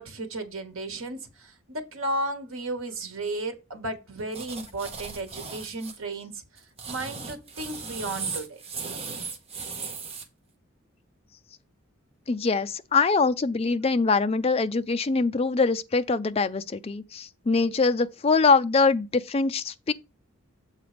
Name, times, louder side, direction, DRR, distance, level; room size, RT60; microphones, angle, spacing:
voice 1, 0.0-6.4 6.9-8.6, right 2 dB, 80° right, 1.3 m, -34 dB
sound 1, 4.3-6.0 6.6-10.2, right 5 dB, 30° right, 1.0 m, -37 dB
voice 2, 12.3-19.9, left 4 dB, 30° left, 0.4 m, -23 dB
7.4 x 3.9 x 5.0 m
head